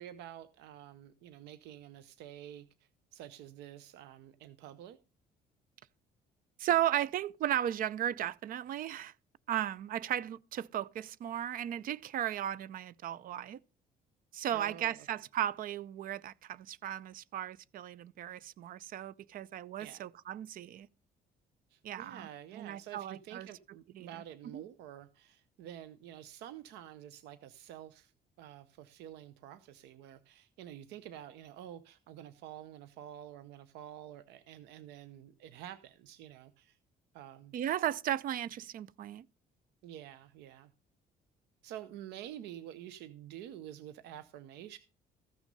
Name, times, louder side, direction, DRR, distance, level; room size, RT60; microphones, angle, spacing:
voice 1, 0.0-2.7 3.1-5.0 14.5-15.1 19.8-20.0 21.7-28.1 28.4-36.8 37.1-37.5 39.8-40.7 41.6-44.8, right 11 dB, 85° right, 0.7 m, -49 dB
voice 2, 6.6-9.1 9.5-13.6 14.3-20.9 21.8-22.3 22.5-23.5 23.9-24.1 24.5-24.6 37.5-39.3, right 11 dB, 55° right, 0.5 m, -35 dB
14.5 x 6.2 x 5.3 m
cardioid pair, 110°, 17 cm